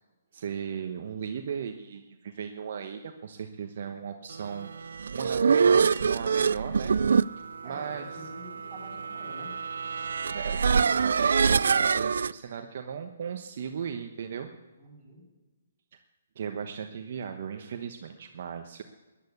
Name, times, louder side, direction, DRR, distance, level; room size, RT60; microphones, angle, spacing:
voice 1, 0.3-7.2 7.6-8.1 10.3-14.5 15.9-16.0 16.3-18.8, right 7 dB, 55° right, 5 dB, 1.1 m, -37 dB
sound 1, 4.8-12.3, right 6 dB, 75° right, 0.4 m, -25 dB
voice 2, 7.6-9.6 14.8-15.2, equal, 15° right, -5 dB, 6.9 m, -46 dB
14.0 x 10.5 x 8.2 m, 1.2 s
hypercardioid pair, 150°, 0 cm